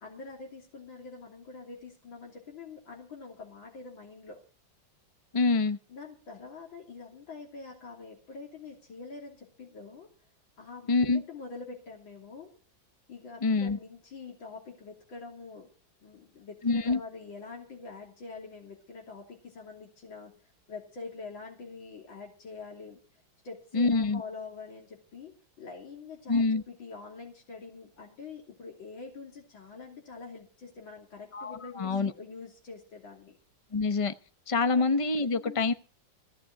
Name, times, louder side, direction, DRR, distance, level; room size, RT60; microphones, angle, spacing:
voice 1, 0.0-4.4 5.9-10.1 10.6-12.6 13.1-15.7 16.0-20.3 20.7-23.0 23.4-25.3 25.6-33.4 34.7-34.9 35.3-35.7, left 4 dB, 90° left, 0 dB, 3.7 m, -45 dB
voice 2, 5.3-5.8 10.9-11.2 13.4-13.8 16.6-17.0 23.7-24.2 26.3-26.6 31.3-32.1 33.7-34.1 34.5-35.7, left 3 dB, 40° left, 10 dB, 0.4 m, -26 dB
16.5 x 6.2 x 9.0 m, 0.40 s
omnidirectional pair, 2.1 m